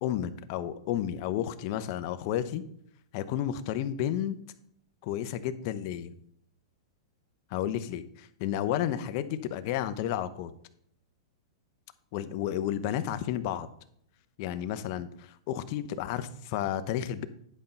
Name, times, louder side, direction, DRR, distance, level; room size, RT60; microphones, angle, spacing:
voice 1, 0.0-2.6 3.1-4.4 5.0-6.1 7.5-10.5 12.1-13.7 14.4-17.2, left 11 dB, 45° left, 11 dB, 0.7 m, -32 dB
10.5 x 5.4 x 4.4 m, 0.67 s
hypercardioid pair, 150°, 3 cm